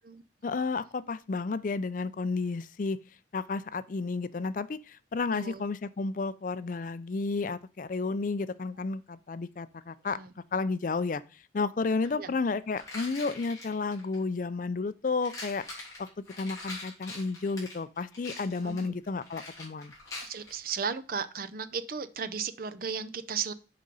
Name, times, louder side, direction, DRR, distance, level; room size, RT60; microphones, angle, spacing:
voice 1, 0.4-3.0 3.3-10.2 10.5-15.6 16.0-19.9, left 4 dB, 45° left, 0.4 m, -32 dB
voice 2, 5.3-5.6 10.1-10.3 12.2-12.3 18.6-19.0 20.2-23.5, right 6 dB, 50° right, 0.6 m, -35 dB
sound 1, 12.0-12.1 12.8-14.2 15.1-20.7, left 2 dB, 20° left, 3.1 m, -43 dB
6.7 x 5.0 x 5.4 m
head